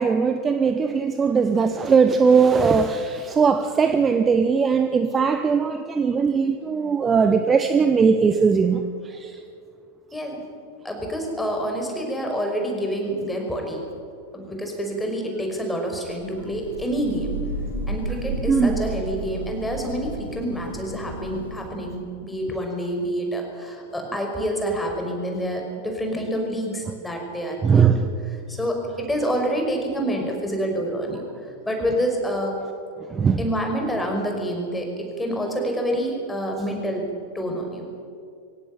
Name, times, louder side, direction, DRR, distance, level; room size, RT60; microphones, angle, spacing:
voice 1, 0.0-9.3 18.5-18.9 27.6-28.1 33.1-33.4, right 5 dB, 20° right, 8 dB, 1.1 m, -19 dB
voice 2, 10.8-13.8 14.3-17.4 17.9-28.0 28.5-31.2 31.7-32.6 33.4-37.1 37.3-37.9, equal, 5° left, 2 dB, 5.6 m, -27 dB
Thunder / Rain, 16.1-21.9, right 2 dB, 80° left, 3.6 m, -32 dB
24.0 x 17.0 x 9.2 m, 2.4 s
figure-of-eight pair, 90°, 0 cm